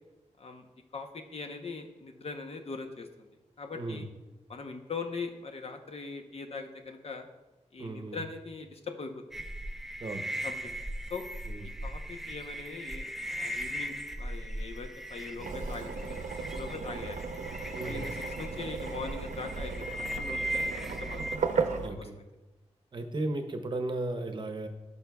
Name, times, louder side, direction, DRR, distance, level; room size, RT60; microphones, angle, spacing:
voice 1, 0.9-3.3 3.6-4.1 4.5-7.2 7.7-9.4 10.4-10.7 11.1-11.2 11.8-16.2 16.6-17.2 17.8-22.1, left 4 dB, 55° left, 4 dB, 0.8 m, -41 dB
voice 2, 3.7-4.0 7.8-8.2 10.0-10.3 11.4-11.7 17.7-18.1 21.8-22.2 22.9-24.7, right 2 dB, 40° right, 6 dB, 0.7 m, -35 dB
sound 1, 9.3-21.4, equal, ahead, 0.3 m, -38 dB
sound 2, 15.4-21.9, right 5 dB, 85° right, 0.6 m, -35 dB
15.5 x 5.5 x 2.3 m, 1.1 s
wide cardioid pair, 155°, 12 cm